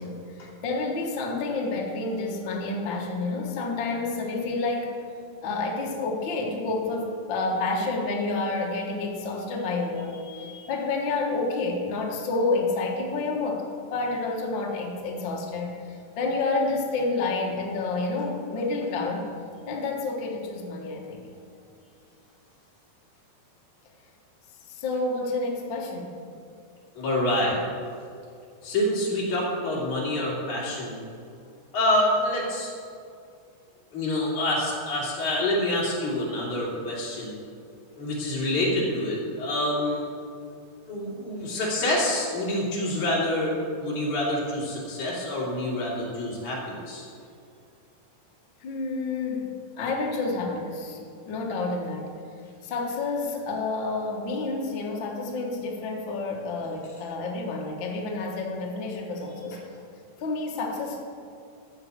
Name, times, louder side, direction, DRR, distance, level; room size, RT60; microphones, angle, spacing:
voice 1, 0.0-4.9 5.4-10.2 10.7-13.6 13.9-15.7 16.2-19.3 19.7-21.3 24.7-26.1 48.6-51.0 51.2-52.1 52.6-59.6 60.2-61.0, left 3 dB, 85° left, 0 dB, 1.0 m, -29 dB
voice 2, 10.3-10.7 27.0-27.6 28.6-31.0 31.7-32.7 33.9-37.3 38.0-40.1 40.9-47.1, left 1 dB, 50° left, -5 dB, 3.8 m, -27 dB
13.5 x 5.6 x 8.0 m, 2.4 s
omnidirectional pair, 4.5 m